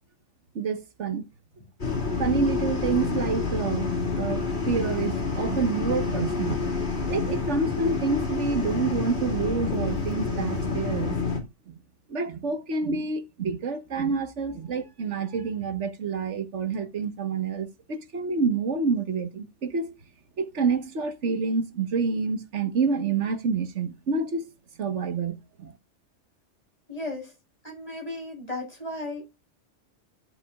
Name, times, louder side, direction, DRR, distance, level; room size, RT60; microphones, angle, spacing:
voice 1, 0.5-1.2 2.2-3.9 4.2-6.6 7.1-11.2 11.7-11.8 12.1-19.9 20.4-24.5 24.8-25.7, right 4 dB, 75° right, 1.6 m, -28 dB
sound 1, 1.8-11.4, left 4 dB, 60° left, 3.0 m, -28 dB
voice 2, 26.9-27.3 27.6-29.4, left 2 dB, 30° left, 6.4 m, -35 dB
14.5 x 8.1 x 2.4 m
omnidirectional pair, 1.2 m